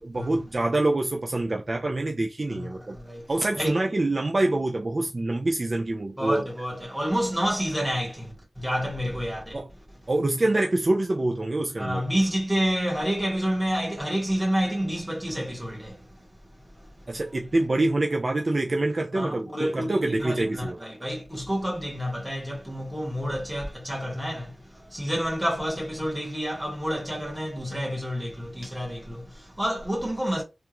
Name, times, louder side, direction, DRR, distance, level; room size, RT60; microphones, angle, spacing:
voice 1, 0.0-3.0 3.3-6.4 9.5-9.7 10.1-12.0 17.1-20.8, right 2 dB, 40° right, 0.4 m, -26 dB
voice 2, 2.5-3.3 3.5-3.8 6.2-9.6 11.8-16.0 19.1-30.4, equal, 5° right, 1.6 m, -29 dB
3.4 x 2.5 x 3.0 m
wide cardioid pair, 80°, 0 cm